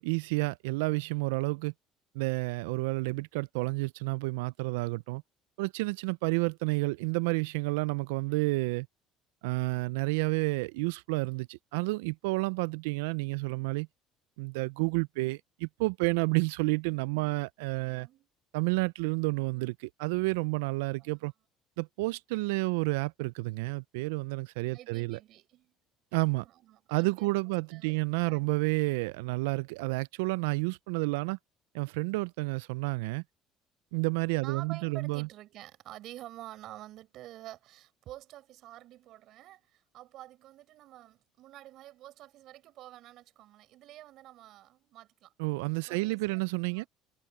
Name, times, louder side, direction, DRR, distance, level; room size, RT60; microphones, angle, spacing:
voice 1, 0.0-1.7 2.1-5.2 5.6-8.9 9.4-13.9 14.4-18.1 18.5-21.3 21.8-25.2 26.1-26.4 26.9-31.4 31.7-33.2 33.9-35.3 45.4-46.8, right 25 dB, 85° right, 0.4 m, -30 dB
voice 2, 18.0-18.3 21.0-21.3 24.7-25.8 26.3-27.3 27.7-28.0 28.2-28.5 34.4-45.3 45.9-46.9, right 14 dB, 65° right, 7.0 m, -49 dB
hypercardioid pair, 70°, 0 cm